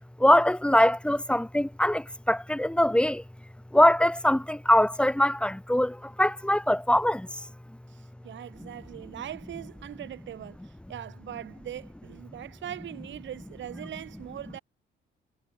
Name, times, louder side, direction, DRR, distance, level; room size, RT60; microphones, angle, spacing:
voice 1, 0.2-3.2 3.7-7.3, left 1 dB, 5° left, 1.7 m, -22 dB
voice 2, 7.9-14.6, right 11 dB, 70° right, 3.5 m, -41 dB
cardioid pair, 90°, 20 cm